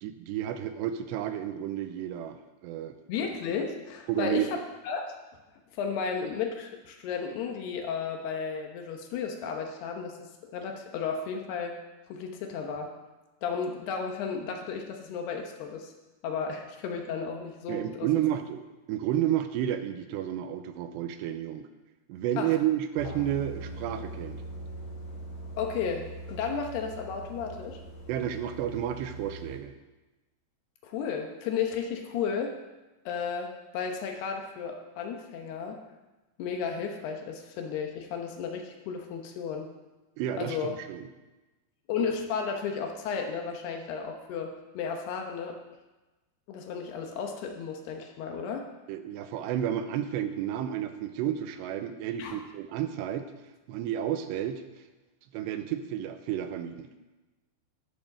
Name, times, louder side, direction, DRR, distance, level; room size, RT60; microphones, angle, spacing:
voice 1, 0.0-2.4 2.6-2.9 4.1-4.5 17.7-18.6 18.9-21.7 22.1-24.4 28.1-29.7 40.2-41.1 48.9-53.2 53.7-54.6 55.3-56.9, right 11 dB, 85° right, 9 dB, 2.8 m, -31 dB
voice 2, 3.1-5.0 5.7-11.8 12.1-12.9 13.4-15.9 16.2-18.1 22.4-22.5 25.6-27.8 30.8-32.5 33.1-35.8 36.4-39.7 40.4-40.8 41.9-45.6 46.5-48.7 52.2-52.4, left 6 dB, 70° left, 3 dB, 2.9 m, -33 dB
sound 1, 23.0-29.6, right 2 dB, 35° left, 2.7 m, -42 dB
12.5 x 7.2 x 6.6 m, 1.1 s
omnidirectional pair, 5.2 m